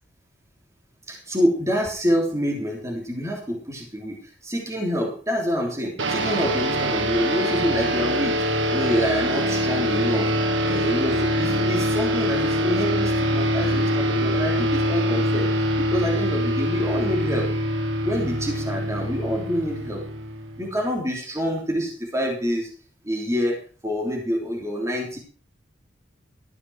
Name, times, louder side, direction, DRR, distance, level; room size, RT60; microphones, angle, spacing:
voice 1, 1.1-4.2 4.4-8.4 8.7-10.3 10.6-17.5 18.0-20.0 20.6-22.7 23.0-23.6 23.8-25.2, equal, 15° right, -1 dB, 3.3 m, -26 dB
sound 1, 6.0-20.8, equal, 75° right, 1.6 m, -24 dB
13.5 x 9.7 x 4.8 m, 0.42 s
head